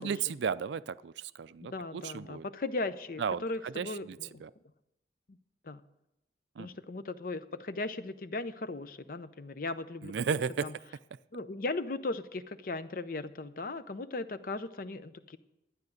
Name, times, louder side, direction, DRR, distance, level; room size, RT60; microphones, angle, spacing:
voice 1, 0.0-2.5 3.2-4.5 6.6-6.7 10.0-10.7, right 6 dB, 75° right, 17 dB, 0.4 m, -34 dB
voice 2, 1.7-4.4 5.3-5.4 5.6-5.8 6.6-10.2 10.6-10.7 11.3-15.4, left 2 dB, 50° left, 13 dB, 0.6 m, -37 dB
12.0 x 9.6 x 6.5 m, 0.91 s
head